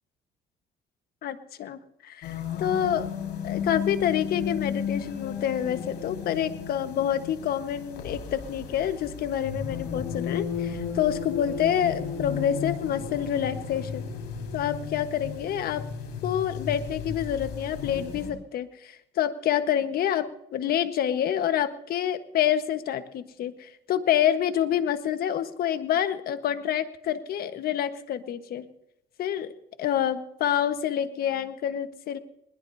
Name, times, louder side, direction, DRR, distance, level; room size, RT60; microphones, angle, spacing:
voice 1, 1.2-3.1 3.4-14.1 14.5-15.8 16.2-28.7 29.2-29.5 29.8-32.2, left 10 dB, 65° left, 9 dB, 1.5 m, -27 dB
sound 1, 2.2-18.3, left 6 dB, 80° left, 5.4 m, -34 dB
20.5 x 20.5 x 2.8 m, 0.81 s
cardioid pair, 110°, 17 cm